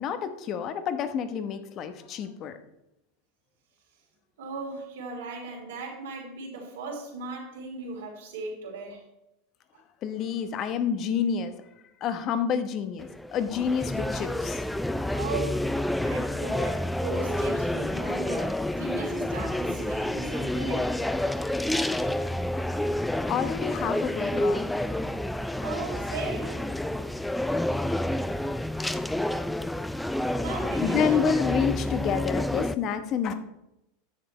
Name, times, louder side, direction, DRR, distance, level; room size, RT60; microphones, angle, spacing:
voice 1, 0.0-2.6 10.0-11.6 12.0-14.6 23.3-24.7 30.8-33.3, left 7 dB, 45° left, 10 dB, 1.0 m, -28 dB
voice 2, 4.4-9.0 15.1-15.6 16.0-20.9 25.6-26.6 30.4-31.3, right 3 dB, 80° right, 0 dB, 3.0 m, -37 dB
sound 1, 13.0-32.7, left 1 dB, 5° left, 0.4 m, -29 dB
10.0 x 6.9 x 4.3 m, 0.87 s
hypercardioid pair, 95°, 0 cm